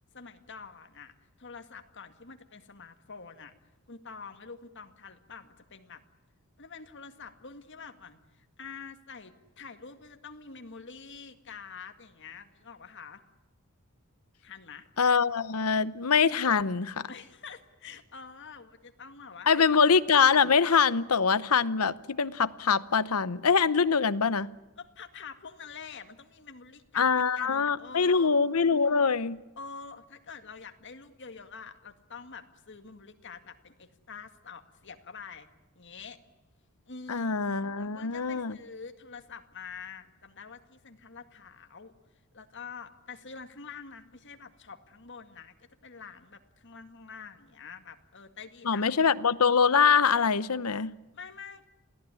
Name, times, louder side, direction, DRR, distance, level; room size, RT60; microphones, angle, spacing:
voice 1, 0.1-3.5 3.9-6.0 6.6-13.2 14.4-14.9 17.1-19.8 24.8-28.4 29.6-35.5 35.8-36.2 36.9-37.3 37.8-41.9 42.3-45.5 45.8-48.8 51.2-51.7, left 5 dB, 55° left, 2.0 m, -46 dB
voice 2, 15.0-17.1 19.5-24.5 26.9-29.4 37.1-38.6 48.6-50.9, left 5 dB, 85° left, 0.9 m, -24 dB
27.5 x 17.5 x 9.8 m
head